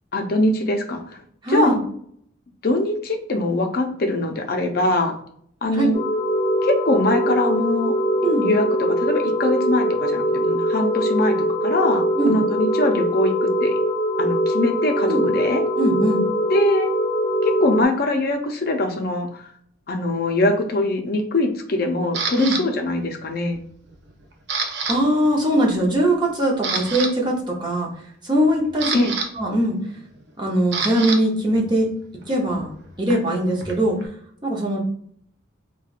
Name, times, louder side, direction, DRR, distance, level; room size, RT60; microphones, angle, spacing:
voice 1, 0.1-1.2 1.5-1.8 2.6-5.1 5.6-6.0 6.6-8.0 8.4-13.7 14.2-15.6 16.5-16.9 17.4-19.5 19.9-23.6 28.9-29.1, left 2 dB, 50° left, 4 dB, 0.5 m, -22 dB
voice 2, 1.4-1.8 5.7-5.9 8.2-8.5 12.2-12.3 15.1-15.2 15.8-16.2 22.4-22.6 24.9-27.9 28.2-29.0 29.4-29.8 30.4-31.9 32.3-32.7 33.0-34.0 34.4-34.8, right 1 dB, 25° right, -2 dB, 0.8 m, -21 dB
sound 1, 5.9-17.9, equal, 30° left, 0.9 m, -22 dB
Camera, 22.1-22.6 23.2-23.6 23.9-25.0 25.2-25.4 26.0-26.1 26.5-27.1 28.3-31.2 31.5-34.1, right 5 dB, 60° right, 0.5 m, -28 dB
4.3 x 2.3 x 2.4 m, 0.63 s
head